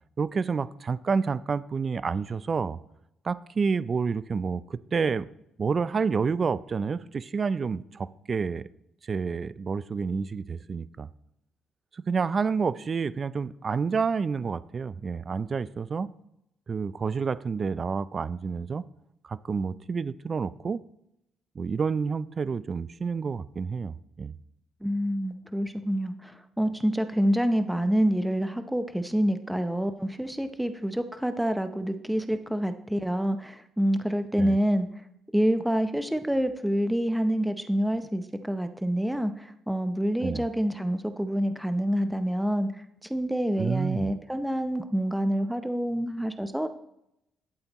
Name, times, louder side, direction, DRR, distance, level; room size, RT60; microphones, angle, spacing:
voice 1, 0.2-2.8 3.2-5.3 5.6-8.7 9.0-11.1 11.9-16.1 16.7-18.9 19.2-20.8 21.6-24.3 34.4-34.6 40.2-40.4 43.6-44.1, right 5 dB, 40° right, 17 dB, 0.4 m, -29 dB
voice 2, 24.8-34.9 35.3-42.7 43.1-46.7, equal, 5° right, 9 dB, 0.7 m, -27 dB
11.5 x 8.3 x 3.0 m, 0.80 s
cardioid pair, 90°, 0 cm